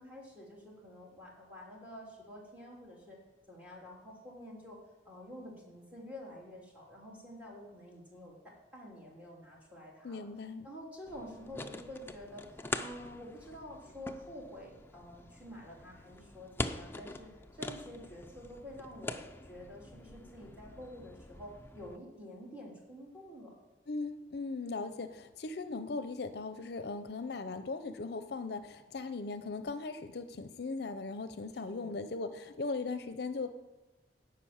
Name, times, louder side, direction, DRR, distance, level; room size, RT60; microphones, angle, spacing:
voice 1, 0.0-3.2 3.5-4.8 5.0-10.2 10.6-19.2 19.5-23.5 31.7-31.9, equal, 10° right, -2 dB, 2.9 m, -49 dB
voice 2, 10.0-10.7 23.9-33.5, left 3 dB, 65° left, 11 dB, 0.6 m, -38 dB
sound 1, 11.1-22.0, left 2 dB, 15° left, 0.5 m, -44 dB
12.0 x 5.9 x 8.6 m, 1.1 s
head